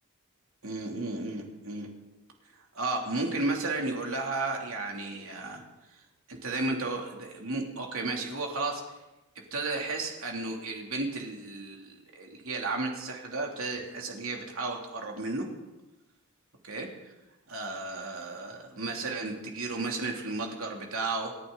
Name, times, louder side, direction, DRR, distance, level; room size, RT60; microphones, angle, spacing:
voice 1, 0.6-1.9 2.7-5.6 6.3-9.0 9.3-15.5 16.6-17.1 17.5-21.3, right 3 dB, 70° right, 0 dB, 2.9 m, -33 dB
28.5 x 11.0 x 4.0 m, 1.0 s
head